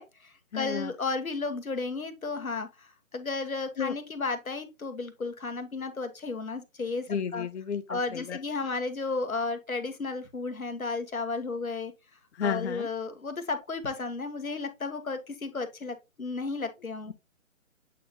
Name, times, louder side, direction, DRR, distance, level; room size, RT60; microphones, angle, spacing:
voice 1, 0.0-7.5 7.9-11.9 12.4-17.1, left 3 dB, 90° left, 1.6 m, -33 dB
voice 2, 0.5-0.9 3.8-3.9 7.1-8.4 12.3-12.9, left 7 dB, 55° left, 0.6 m, -32 dB
8.3 x 4.0 x 2.8 m
figure-of-eight pair, 145°, 41 cm